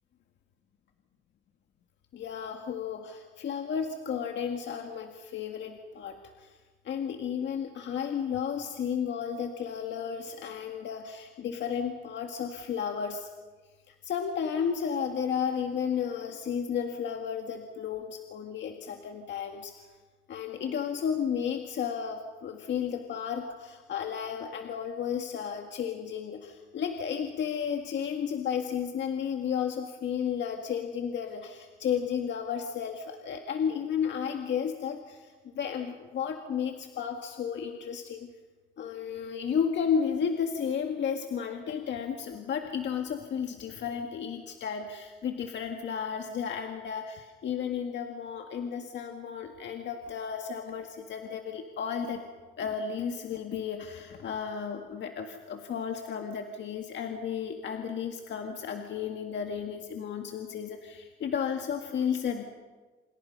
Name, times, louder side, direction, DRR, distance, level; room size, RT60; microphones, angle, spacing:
voice 1, 2.1-6.6 6.8-13.3 13.9-19.7 20.3-38.3 38.8-52.2 52.6-62.4, left 7 dB, 65° left, 4 dB, 1.9 m, -33 dB
27.5 x 27.0 x 5.5 m, 1.3 s
cardioid pair, 90°, 20 cm